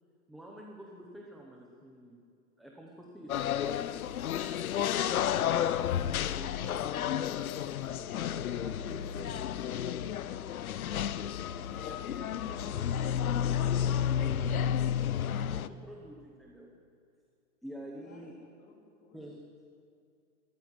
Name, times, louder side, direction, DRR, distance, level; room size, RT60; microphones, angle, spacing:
voice 1, 0.3-2.2 2.6-3.8 4.4-5.2 5.4-5.9 6.3-7.3 8.6-9.3 11.0-11.2 11.5-14.7 15.4-16.7 17.6-18.4 19.1-19.4, equal, ahead, -3 dB, 0.9 m, -49 dB
sound 1, 3.3-15.7, left 9 dB, 80° left, 1.0 m, -31 dB
voice 2, 17.8-18.3 18.6-19.3, left 3 dB, 30° left, 0 dB, 3.9 m, -59 dB
23.0 x 13.5 x 9.5 m, 2.4 s
hypercardioid pair, 170°, 42 cm